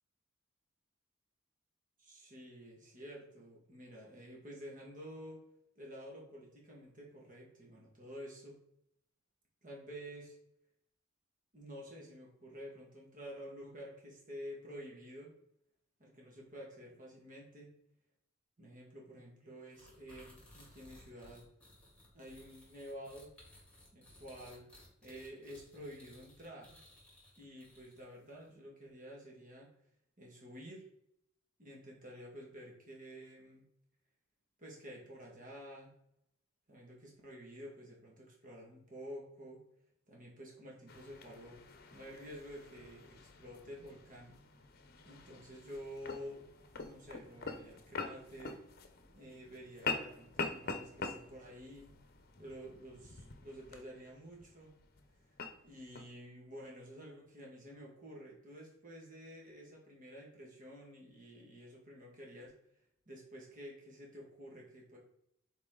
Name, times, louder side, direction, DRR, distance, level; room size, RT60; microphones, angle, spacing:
voice 1, 2.0-5.4 5.8-8.6 9.6-10.4 11.5-15.3 16.0-17.7 18.6-21.5 22.1-23.3 23.9-24.7 25.0-26.8 27.4-29.7 30.2-30.9 31.6-33.7 34.6-35.9 36.7-39.6 40.1-41.6 41.9-44.4 45.0-46.4 46.8-48.6 49.1-51.9 52.4-54.8 55.6-62.5 63.1-65.0, equal, 40° right, -2 dB, 1.9 m, -50 dB
sound 1, 19.7-28.2, left 1 dB, 5° left, 2.7 m, -60 dB
sound 2, 40.9-56.1, left 4 dB, 50° left, 0.8 m, -45 dB
7.2 x 4.3 x 3.8 m, 0.75 s
head